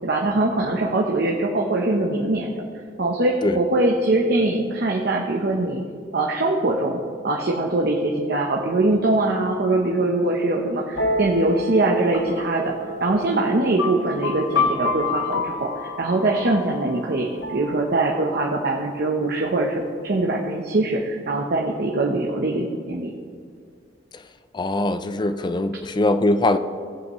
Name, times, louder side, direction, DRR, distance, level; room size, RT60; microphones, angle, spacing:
voice 1, 0.0-2.6 3.0-5.8 6.1-12.7 13.0-23.1, right 2 dB, 55° right, -1 dB, 0.9 m, -22 dB
sound 1, 10.9-18.5, left 3 dB, 75° left, 1.0 m, -29 dB
voice 2, 24.5-26.6, left 2 dB, 25° left, 11 dB, 0.4 m, -21 dB
18.0 x 8.0 x 3.1 m, 2.2 s
head